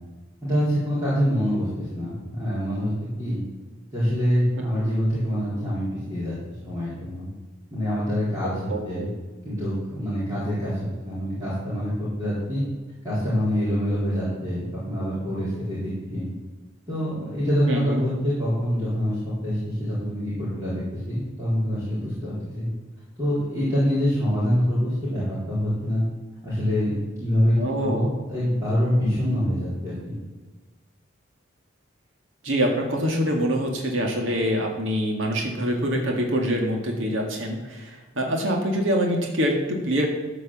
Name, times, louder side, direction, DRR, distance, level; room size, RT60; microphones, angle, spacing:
voice 1, 0.4-2.9 3.2-3.4 3.9-6.3 6.6-7.3 7.7-9.1 9.4-12.6 13.0-16.3 16.9-22.7 23.2-26.0 26.4-30.2, equal, 15° right, -12 dB, 4.2 m, -25 dB
voice 2, 8.7-9.1 17.7-18.0 27.6-28.1 32.4-40.1, equal, 80° right, 1 dB, 2.0 m, -25 dB
13.5 x 5.1 x 7.4 m, 1.2 s
head